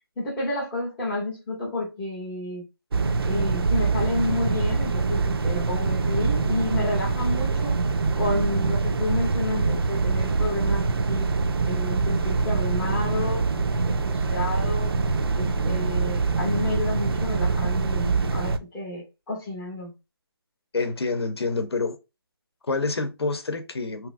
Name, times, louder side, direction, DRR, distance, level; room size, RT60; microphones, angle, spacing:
voice 1, 0.2-2.6 3.3-7.8 8.2-11.3 11.6-14.9 15.3-19.9, left 2 dB, 5° left, 0.3 m, -30 dB
sound 1, 2.9-18.6, right 4 dB, 70° right, 0.4 m, -24 dB
voice 2, 20.7-22.0 22.7-24.1, left 3 dB, 85° left, 0.7 m, -27 dB
2.9 x 2.5 x 2.4 m
hypercardioid pair, 165°, 13 cm